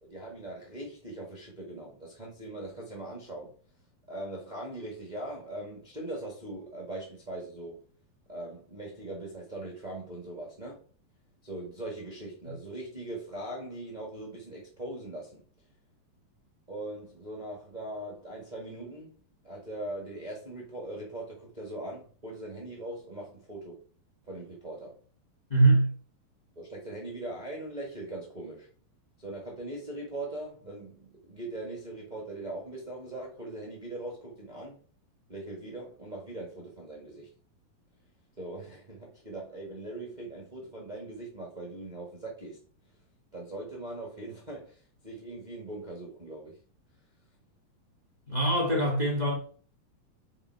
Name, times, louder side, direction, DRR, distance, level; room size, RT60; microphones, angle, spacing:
voice 1, 0.0-3.5 4.1-7.8 8.3-10.8 11.4-15.4 16.7-23.8 24.2-25.0 26.5-28.7 29.2-34.8 35.3-37.3 38.4-42.6 43.3-46.6, right 1 dB, 90° right, 0.4 m, -40 dB
voice 2, 25.5-25.9 48.3-49.3, right 2 dB, 25° left, 0.9 m, -23 dB
7.2 x 4.6 x 4.8 m
omnidirectional pair, 4.4 m